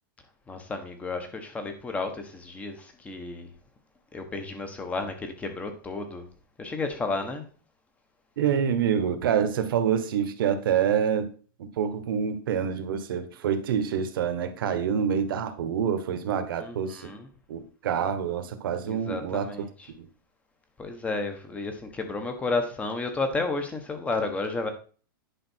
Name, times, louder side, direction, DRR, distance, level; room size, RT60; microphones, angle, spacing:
voice 1, 0.5-3.5 4.1-6.2 6.6-7.4 16.6-17.3 18.8-19.7 20.8-24.7, left 3 dB, 10° left, 1.4 m, -32 dB
voice 2, 8.4-11.3 11.6-17.1 17.5-19.7 20.0-20.1, right 8 dB, 75° right, 1.4 m, -27 dB
10.0 x 5.3 x 4.6 m
supercardioid pair, 155°, 12 cm